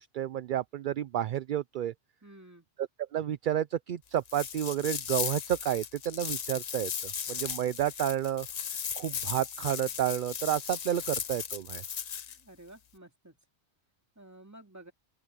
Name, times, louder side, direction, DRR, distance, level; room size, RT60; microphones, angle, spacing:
voice 1, 0.0-1.9 3.1-8.5 9.0-11.8, right 11 dB, 60° right, 0.6 m, -31 dB
voice 2, 2.2-2.7 12.4-13.4 14.2-14.9, right 1 dB, 15° right, 2.4 m, -52 dB
sound 1, 4.2-12.4, left 8 dB, 45° left, 0.6 m, -36 dB
open air
omnidirectional pair, 1.2 m